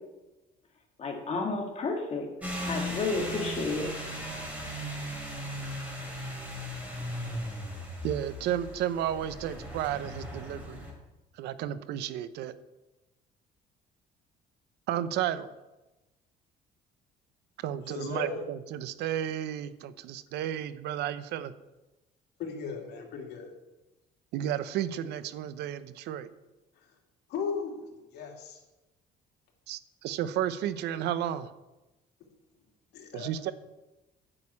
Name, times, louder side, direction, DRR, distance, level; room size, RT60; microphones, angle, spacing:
voice 1, 1.0-2.3 2.7-3.9, left 3 dB, 40° left, 1 dB, 2.1 m, -31 dB
sound 1, 2.4-10.9, equal, 10° right, 4.0 m, -37 dB
voice 2, 8.0-10.8 11.3-12.5 14.9-15.5 17.6-21.5 24.3-26.3 29.7-31.5 33.1-33.5, right 11 dB, 85° right, 14 dB, 0.7 m, -32 dB
voice 3, 17.8-18.4 22.4-23.5 27.3-28.6 32.9-33.3, left 5 dB, 75° left, 0 dB, 2.9 m, -36 dB
9.9 x 6.5 x 8.5 m, 1.0 s
cardioid pair, 110°, 17 cm